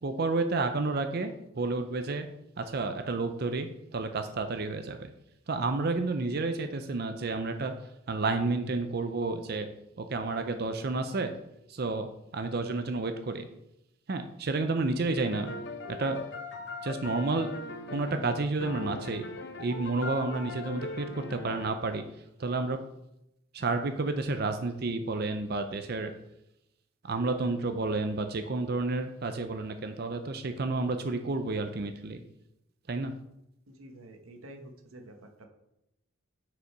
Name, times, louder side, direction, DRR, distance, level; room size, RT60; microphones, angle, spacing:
voice 1, 0.0-2.3 2.6-5.1 5.5-7.7 8.1-9.7 10.0-11.3 11.7-13.5 14.1-15.5 16.0-16.2 16.8-17.5 17.9-19.3 19.6-22.0 22.4-22.8 23.5-26.1 27.0-32.2 32.9-33.1, right 3 dB, 50° right, 8 dB, 0.5 m, -30 dB
sound 1, 15.2-21.7, left 2 dB, 55° left, 0.7 m, -39 dB
voice 2, 33.7-35.5, right 1 dB, 85° right, 4 dB, 1.1 m, -49 dB
6.6 x 5.1 x 4.6 m, 0.83 s
head